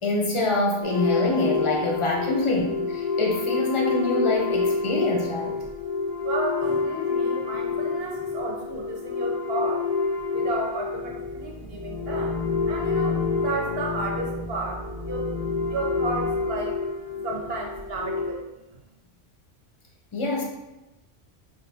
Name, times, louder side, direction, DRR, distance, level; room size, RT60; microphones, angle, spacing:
voice 1, 0.0-5.6 20.1-20.4, left 2 dB, 35° left, -1 dB, 0.5 m, -25 dB
sound 1, 0.8-18.3, left 4 dB, 20° right, 0.8 m, -28 dB
voice 2, 6.2-9.8 10.3-15.3 15.7-16.8 17.1-18.4, right 2 dB, 60° right, 0 dB, 0.9 m, -32 dB
4.9 x 2.5 x 2.7 m, 0.98 s
omnidirectional pair, 1.2 m